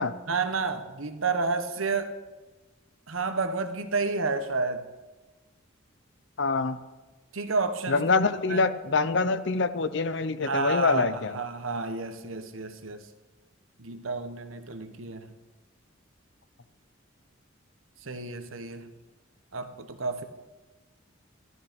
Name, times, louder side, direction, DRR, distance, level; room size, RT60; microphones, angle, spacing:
voice 1, 0.3-2.2 3.1-4.9 7.3-8.0 8.5-8.6 10.4-13.0 13.8-15.3 18.0-18.9 19.5-20.2, right 4 dB, 85° right, 8 dB, 1.3 m, -30 dB
voice 2, 6.4-6.8 7.9-11.3, left 4 dB, 60° left, 13 dB, 0.7 m, -25 dB
15.0 x 13.0 x 5.3 m, 1.2 s
head